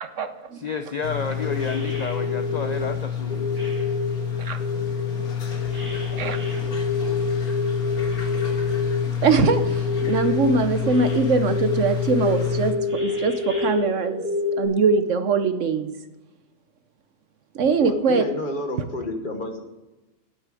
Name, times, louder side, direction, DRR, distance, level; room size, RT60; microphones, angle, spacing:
voice 1, 0.0-0.6 4.4-4.6 6.1-6.4 9.2-14.2 14.6-15.9 17.5-18.2, right 5 dB, 60° right, 10 dB, 1.0 m, -22 dB
voice 2, 0.5-3.5, left 5 dB, 50° left, 7 dB, 0.5 m, -30 dB
sound 1, 1.0-12.7, left 8 dB, 80° left, 2.0 m, -28 dB
sound 2, 1.4-2.8 3.3-4.2 4.6-8.9 9.5-10.4 10.8-11.2 11.5-14.7, left 3 dB, 10° right, 4.1 m, -28 dB
voice 3, 17.8-19.6, left 2 dB, 35° left, 5 dB, 1.3 m, -30 dB
9.4 x 8.2 x 7.6 m, 1.1 s
omnidirectional pair, 1.6 m